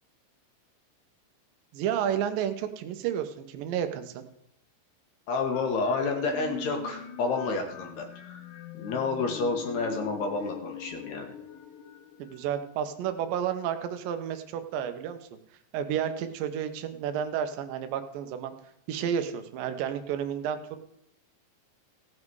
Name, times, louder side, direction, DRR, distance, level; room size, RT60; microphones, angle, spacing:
voice 1, 1.7-4.2 12.2-15.2 15.7-18.5 18.9-20.6, right 9 dB, 75° right, 8 dB, 2.5 m, -31 dB
voice 2, 5.3-8.4 8.7-11.3, left 4 dB, 60° left, 3 dB, 2.4 m, -30 dB
sound 1, 5.5-13.2, left 10 dB, 75° left, 2.5 m, -44 dB
17.0 x 7.6 x 4.7 m, 0.80 s
omnidirectional pair, 4.3 m